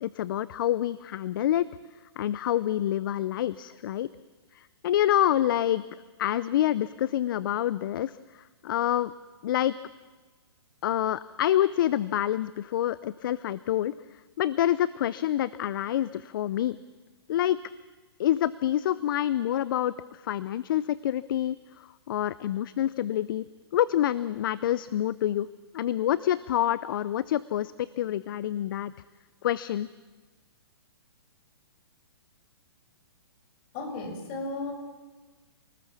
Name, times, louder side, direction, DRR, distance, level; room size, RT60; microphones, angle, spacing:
voice 1, 0.0-1.7 2.2-4.1 4.5-5.8 6.2-9.1 9.4-9.7 10.8-13.9 14.4-16.8 17.3-17.6 18.2-23.4 23.7-25.5 25.7-28.9 29.4-29.9, left 12 dB, 55° left, 17 dB, 0.6 m, -27 dB
voice 2, 33.7-34.7, left 3 dB, 35° left, 4 dB, 5.9 m, -34 dB
28.0 x 19.5 x 7.2 m, 1.3 s
hypercardioid pair, 135°, 14 cm